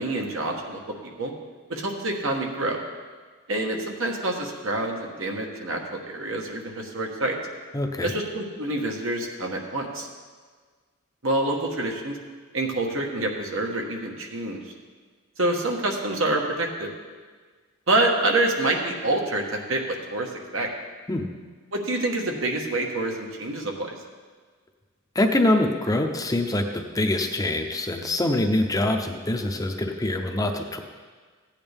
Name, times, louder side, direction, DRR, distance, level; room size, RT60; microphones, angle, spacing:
voice 1, 0.0-1.3 1.7-2.8 3.5-7.4 8.0-10.1 11.2-12.2 12.5-14.6 15.4-16.9 17.9-20.7 21.7-23.9, right 2 dB, 75° right, 1 dB, 1.4 m, -27 dB
voice 2, 7.7-8.1 21.1-21.3 25.1-30.8, left 1 dB, 15° left, 4 dB, 0.6 m, -24 dB
15.0 x 8.9 x 3.5 m, 1.5 s
head